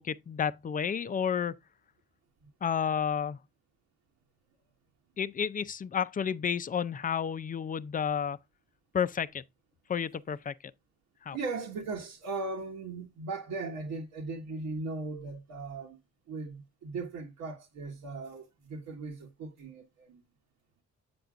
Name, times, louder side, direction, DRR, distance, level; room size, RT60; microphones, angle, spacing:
voice 1, 0.0-1.5 2.6-3.4 5.2-8.4 8.9-9.4 9.9-10.5 11.3-11.4, left 7 dB, 30° left, 0.5 m, -31 dB
voice 2, 11.3-16.0 16.3-20.2, right 3 dB, 80° right, 1.6 m, -38 dB
7.9 x 6.8 x 2.5 m
cardioid pair, 90°, 30 cm